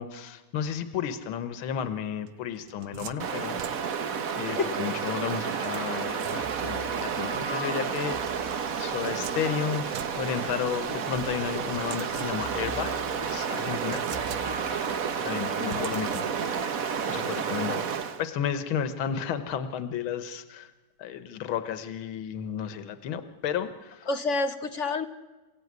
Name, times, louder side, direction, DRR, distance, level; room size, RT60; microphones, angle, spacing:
voice 1, 0.0-3.6 4.4-14.0 15.2-16.7 17.1-17.9 18.2-20.7 21.0-24.1, left 8 dB, 75° left, 10 dB, 2.0 m, -33 dB
sound 1, 2.3-4.2 5.6-6.8 8.5-11.0 11.7-12.7 13.2-13.3 13.8-14.9 15.7-16.7, right 10 dB, 90° right, 1.8 m, -44 dB
Stream, 3.2-18.3, right 6 dB, 50° right, 1.3 m, -31 dB
voice 2, 4.5-4.8 15.6-15.9 24.1-25.1, left 3 dB, 50° left, 10 dB, 0.9 m, -29 dB
sound 2, 6.4-10.4 11.1-15.8, left 1 dB, 20° right, 2.6 m, -45 dB
27.5 x 16.5 x 9.5 m, 1.2 s
omnidirectional pair, 2.3 m